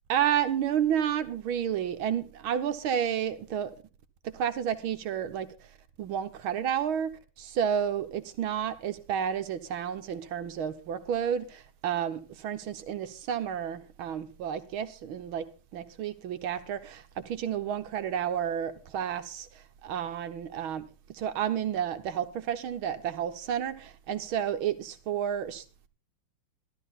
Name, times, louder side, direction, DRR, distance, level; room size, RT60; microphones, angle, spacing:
voice 1, 0.1-3.7 4.2-5.5 6.0-15.5 15.7-20.8 21.1-25.9, right 9 dB, 90° right, 1.9 m, -31 dB
13.5 x 13.0 x 4.1 m
omnidirectional pair, 2.2 m